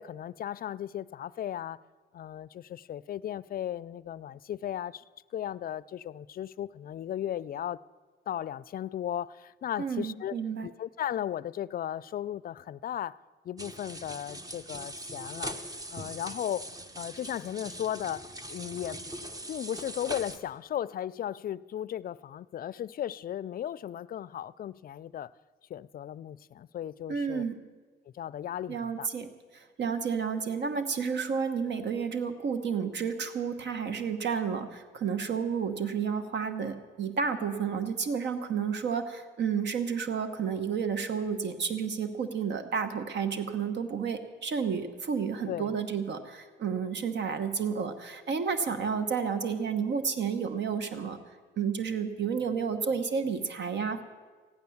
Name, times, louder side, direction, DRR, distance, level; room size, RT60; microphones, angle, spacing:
voice 1, 0.0-1.8 2.1-5.0 5.3-7.8 8.3-10.3 10.6-13.2 13.4-15.6 15.9-16.7 17.0-19.0 19.5-25.3 25.7-27.4 28.1-29.1 45.5-45.7, left 11 dB, 50° left, 0.4 m, -36 dB
voice 2, 9.8-10.7 27.1-27.6 28.7-51.2 51.6-54.0, right 6 dB, 60° right, 1.1 m, -31 dB
sound 1, 13.6-20.4, right 1 dB, 20° right, 1.0 m, -41 dB
14.5 x 10.5 x 7.1 m
cardioid pair, 90°, 20 cm